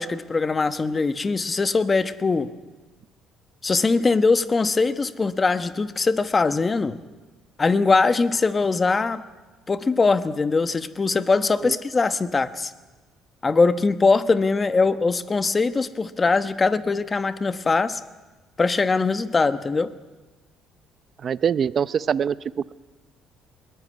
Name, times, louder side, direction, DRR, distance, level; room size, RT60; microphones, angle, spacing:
voice 1, 0.0-2.5 3.6-7.0 7.6-9.2 9.7-12.7 13.4-18.0 18.6-19.9, left 4 dB, 25° left, 11 dB, 1.1 m, -21 dB
voice 2, 21.2-22.4, right 7 dB, 40° right, 16 dB, 0.7 m, -23 dB
22.0 x 20.5 x 9.6 m, 1.2 s
cardioid pair, 120°, 0 cm